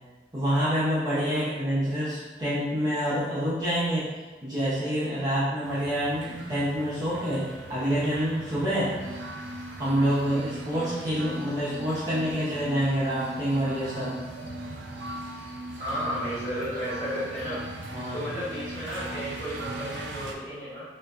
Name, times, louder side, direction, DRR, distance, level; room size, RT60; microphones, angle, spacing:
voice 1, 0.3-4.1 4.4-8.9 9.8-14.2 17.9-18.2, equal, 20° right, -10 dB, 0.5 m, -27 dB
sound 1, 5.6-20.4, right 2 dB, 80° right, 0.3 m, -41 dB
sound 2, 9.0-20.0, equal, 10° left, 1.0 m, -42 dB
voice 2, 15.8-17.6 18.1-20.8, equal, 40° left, -12 dB, 1.5 m, -33 dB
2.5 x 2.1 x 2.3 m, 1.2 s
head